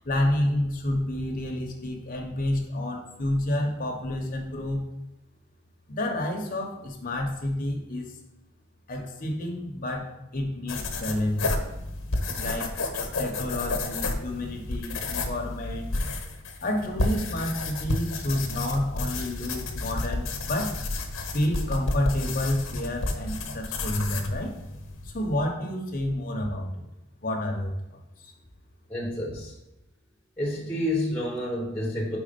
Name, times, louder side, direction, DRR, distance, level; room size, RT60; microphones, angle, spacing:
voice 1, 0.0-4.9 5.9-8.1 8.9-11.5 12.4-15.9 16.6-20.8 21.3-24.5 25.0-26.8 27.2-28.3, left 1 dB, 40° left, 1 dB, 0.9 m, -29 dB
sound 1, 10.7-25.5, left 2 dB, 80° left, 1.0 m, -31 dB
voice 2, 28.9-29.5 30.4-32.2, left 1 dB, 5° left, -4 dB, 1.1 m, -29 dB
4.6 x 4.2 x 5.2 m, 0.90 s
head